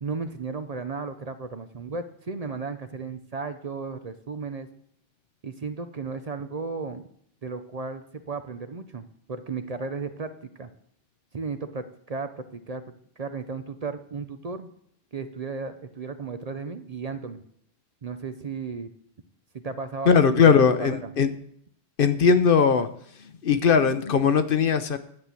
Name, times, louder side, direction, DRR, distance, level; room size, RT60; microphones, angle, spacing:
voice 1, 0.0-4.7 5.4-7.0 7.4-10.3 10.6-10.7 11.3-12.8 13.2-14.7 15.1-17.4 18.0-18.9 19.5-21.1, right 4 dB, 45° right, 9 dB, 0.7 m, -34 dB
voice 2, 20.1-21.3 22.0-22.9 23.4-25.0, left 6 dB, 60° left, 11 dB, 0.9 m, -19 dB
10.5 x 6.0 x 8.3 m, 0.66 s
omnidirectional pair, 1.1 m